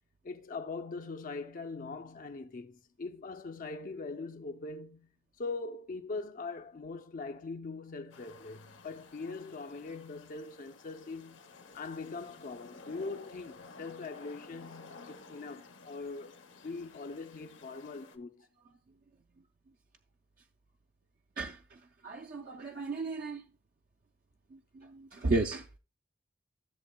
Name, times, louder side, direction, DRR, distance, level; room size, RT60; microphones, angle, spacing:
voice 1, 0.2-5.1 5.4-11.4 11.7-18.4, left 3 dB, 45° left, 0.5 m, -42 dB
sound 1, 8.1-18.2, left 4 dB, 70° left, 0.9 m, -53 dB
voice 2, 21.4-23.4 24.5-25.8, right 3 dB, 45° right, 0.4 m, -34 dB
14.0 x 7.1 x 2.2 m
head